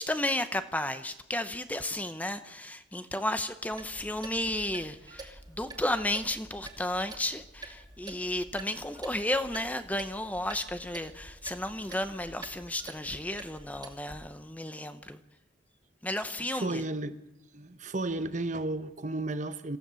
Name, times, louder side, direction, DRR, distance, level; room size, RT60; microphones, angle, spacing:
voice 1, 0.0-15.2 16.0-16.8, left 1 dB, 10° left, 0.9 m, -33 dB
Clock, 3.7-14.3, right 2 dB, 20° right, 2.6 m, -48 dB
voice 2, 16.5-17.2 17.5-19.8, right 2 dB, 40° right, 1.0 m, -33 dB
26.5 x 15.0 x 7.0 m
head